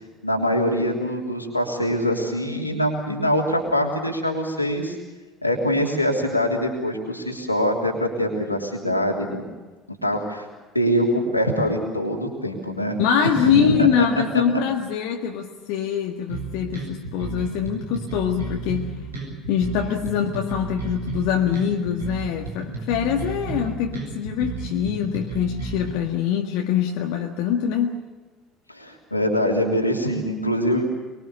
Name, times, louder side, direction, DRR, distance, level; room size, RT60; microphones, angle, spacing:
voice 1, 0.2-5.0 5.4-9.4 9.9-10.5 10.7-13.9 28.7-30.9, equal, 90° left, 0 dB, 3.2 m, -23 dB
voice 2, 13.0-18.9 19.5-28.0, left 8 dB, 60° left, 2 dB, 1.7 m, -24 dB
sound 1, 16.3-25.9, right 4 dB, 80° right, 7.9 m, -32 dB
24.0 x 23.0 x 6.9 m, 1.2 s
figure-of-eight pair, 60°, 0 cm